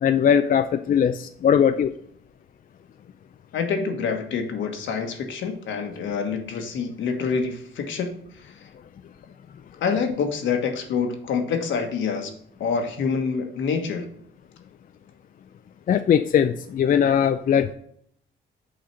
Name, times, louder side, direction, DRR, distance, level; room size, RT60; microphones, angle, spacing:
voice 1, 0.0-1.9 15.9-17.7, left 8 dB, 45° left, 0.4 m, -20 dB
voice 2, 3.5-8.6 9.8-12.3 12.6-14.1, left 5 dB, 75° left, 1.4 m, -27 dB
6.4 x 4.1 x 5.8 m
cardioid pair, 90°, 20 cm